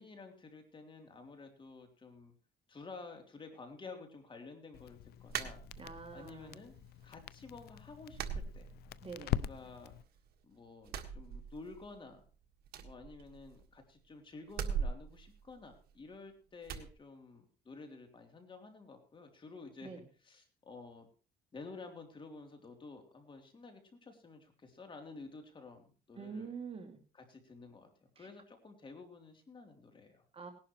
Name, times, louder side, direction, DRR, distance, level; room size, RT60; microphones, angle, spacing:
voice 1, 0.0-2.3 2.7-5.6 6.1-6.7 7.0-8.7 9.2-9.9 10.4-12.2 12.8-21.1 21.5-26.5 27.1-30.2, left 3 dB, 30° left, 4 dB, 3.2 m, -51 dB
Crackle, 4.7-10.0, left 12 dB, 70° left, 0.6 m, -42 dB
sound 1, 5.3-6.2 6.6-7.3 7.5-7.7 8.1-9.3 9.6-10.4 10.8-12.0 12.2-12.3 12.6-13.8 14.5-16.1 16.6-16.9, right 7 dB, 65° right, 1.7 m, -41 dB
voice 2, 5.8-6.6 9.0-9.3 19.8-20.0 26.2-27.0 28.2-28.3 30.3-30.5, right 5 dB, 35° right, 4 dB, 2.5 m, -45 dB
19.0 x 11.5 x 3.1 m, 0.35 s
cardioid pair, 110°, 17 cm